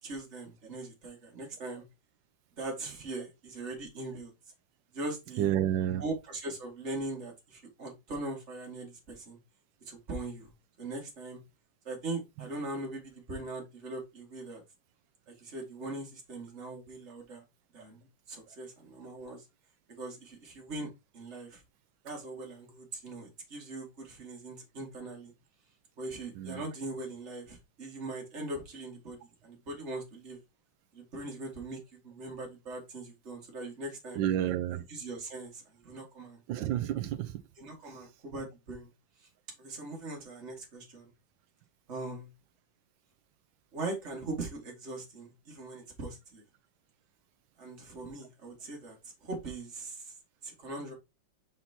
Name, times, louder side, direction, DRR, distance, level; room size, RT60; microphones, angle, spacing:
voice 1, 0.0-1.8 2.6-4.3 4.9-5.5 6.0-9.4 9.9-10.5 10.8-11.4 11.8-14.6 15.3-17.4 17.7-19.5 19.9-21.6 22.0-25.3 26.0-30.4 30.9-34.2 34.7-36.4 37.6-38.9 39.2-39.3 39.6-41.1 41.9-42.3 43.7-46.4 47.6-50.2 50.4-50.9, right 2 dB, 35° right, 2.2 m, -41 dB
voice 2, 5.4-6.0 26.4-26.6 34.1-34.8 36.5-37.3, right 11 dB, 80° right, 1.3 m, -30 dB
5.8 x 5.8 x 2.8 m
omnidirectional pair, 2.0 m